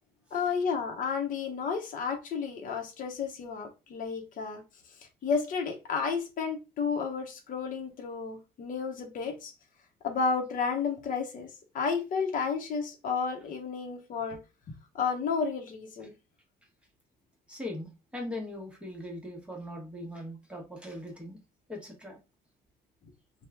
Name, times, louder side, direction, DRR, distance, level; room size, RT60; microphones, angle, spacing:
voice 1, 0.3-4.6 5.2-9.5 10.0-11.5 11.7-14.4 14.9-16.1, left 5 dB, 50° left, 3 dB, 0.9 m, -32 dB
voice 2, 17.5-21.4 21.7-22.2, left 1 dB, 5° right, 0 dB, 1.2 m, -40 dB
3.0 x 2.3 x 3.5 m, 0.28 s
cardioid pair, 110°, 17 cm